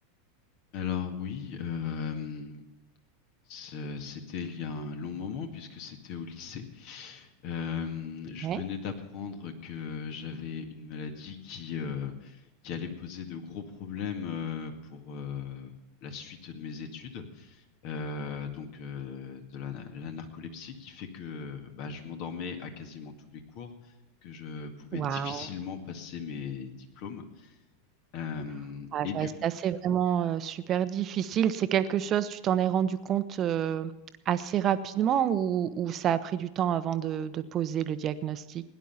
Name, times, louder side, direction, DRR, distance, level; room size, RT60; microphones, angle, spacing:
voice 1, 0.7-2.6 3.5-15.7 16.0-23.7 24.2-27.5 28.1-29.3, left 6 dB, 50° left, 5 dB, 2.0 m, -38 dB
voice 2, 24.9-25.5 28.9-33.9 34.3-38.6, right 9 dB, 35° right, 13 dB, 0.8 m, -28 dB
17.5 x 10.5 x 5.7 m, 1.0 s
figure-of-eight pair, 90°, 0 cm